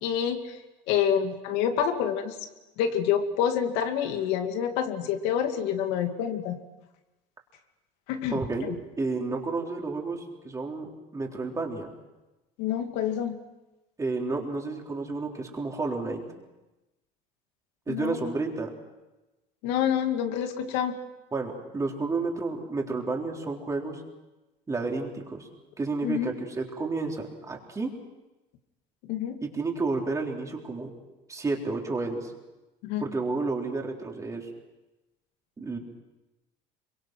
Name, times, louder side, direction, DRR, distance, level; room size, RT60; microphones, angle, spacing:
voice 1, 0.0-0.6 0.9-2.4 2.8-6.6 8.1-8.8 12.6-13.4 17.9-18.2 19.6-21.0 26.0-26.3 29.1-29.4 32.8-33.1, left 8 dB, 80° left, 6 dB, 2.3 m, -27 dB
voice 2, 8.3-11.9 14.0-16.2 17.9-18.7 21.3-24.0 24.7-25.5 25.8-27.9 29.4-30.9 31.3-32.3 33.0-34.5 35.6-35.8, right 3 dB, 20° right, 0 dB, 3.8 m, -31 dB
26.5 x 24.0 x 6.2 m, 1.0 s
cardioid pair, 140°, 18 cm